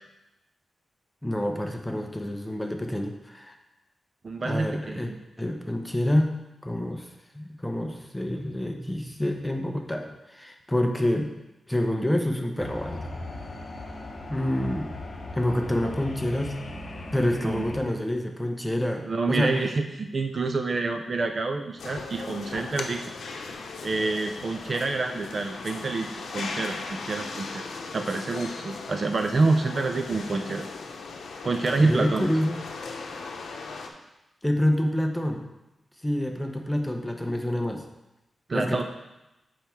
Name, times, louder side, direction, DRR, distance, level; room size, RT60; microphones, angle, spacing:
voice 1, 1.2-3.5 4.4-5.1 5.4-6.3 6.6-7.1 7.3-11.3 11.7-13.1 14.3-14.9 15.4-16.6 17.1-19.5 31.8-32.6 34.4-35.4 36.0-37.8 38.5-38.8, left 1 dB, 5° left, 3 dB, 0.7 m, -27 dB
voice 2, 4.2-5.2 17.4-17.6 19.1-23.0 23.8-30.7 31.4-32.3 38.5-38.8, right 3 dB, 40° right, 5 dB, 0.5 m, -27 dB
sound 1, 12.6-17.8, left 2 dB, 40° left, 0.9 m, -38 dB
sound 2, 21.8-33.9, left 4 dB, 90° left, 0.7 m, -38 dB
7.4 x 4.6 x 4.5 m, 0.97 s
wide cardioid pair, 140°, 0 cm